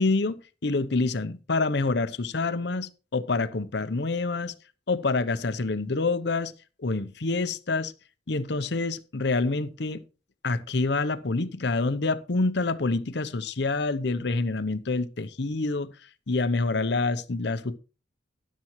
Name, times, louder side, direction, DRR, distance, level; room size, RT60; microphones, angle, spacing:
voice 1, 0.0-4.5 4.9-6.5 6.8-7.9 8.3-10.0 10.4-15.9 16.3-17.8, left 3 dB, 65° left, 0.8 m, -27 dB
13.0 x 10.5 x 3.1 m
head